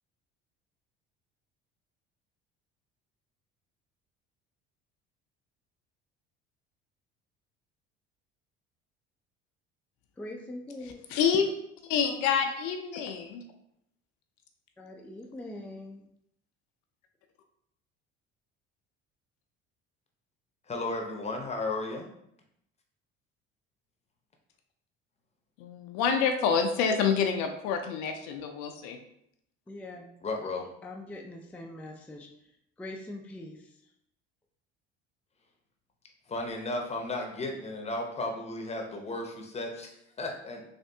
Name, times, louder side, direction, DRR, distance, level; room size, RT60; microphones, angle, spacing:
voice 1, 10.2-11.0 14.8-16.0 29.7-30.1 30.8-32.3 32.8-33.6, left 1 dB, 5° left, 1 dB, 0.4 m, -42 dB
voice 2, 10.8-11.5 11.9-13.4 25.6-29.0, left 6 dB, 70° left, 5 dB, 0.5 m, -27 dB
voice 3, 20.7-22.1 30.2-30.7 36.3-40.6, left 2 dB, 20° left, 2 dB, 0.7 m, -34 dB
3.3 x 2.5 x 2.7 m, 0.76 s
hypercardioid pair, 70°, 29 cm